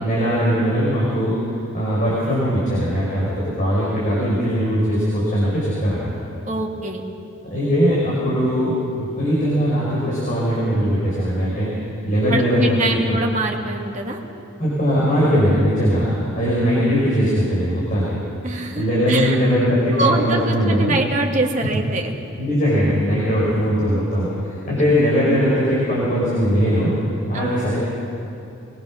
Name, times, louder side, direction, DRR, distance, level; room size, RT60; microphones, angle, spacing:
voice 1, 0.0-1.4 1.7-6.1 7.4-12.7 13.1-13.2 14.6-18.2 18.5-21.0 22.4-26.9 27.3-27.8, equal, 40° left, -8 dB, 5.3 m, -20 dB
voice 2, 6.5-7.0 12.3-14.2 16.6-17.0 18.4-19.4 19.9-22.1 27.3-27.7, right 2 dB, 35° right, 1 dB, 2.0 m, -24 dB
22.5 x 21.0 x 6.3 m, 2.7 s
head